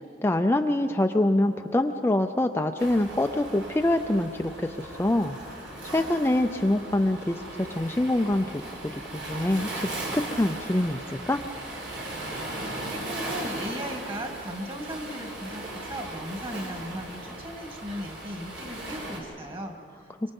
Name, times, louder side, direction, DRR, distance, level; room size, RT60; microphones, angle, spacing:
voice 1, 0.2-5.4 5.8-8.6 8.9-9.9 10.1-11.4, left 1 dB, 15° left, 5 dB, 0.5 m, -25 dB
Waves surf, 2.8-19.2, right 1 dB, 75° right, 4.6 m, -37 dB
voice 2, 12.8-19.7, equal, 30° right, 3 dB, 2.3 m, -37 dB
24.0 x 24.0 x 5.4 m, 2.5 s
head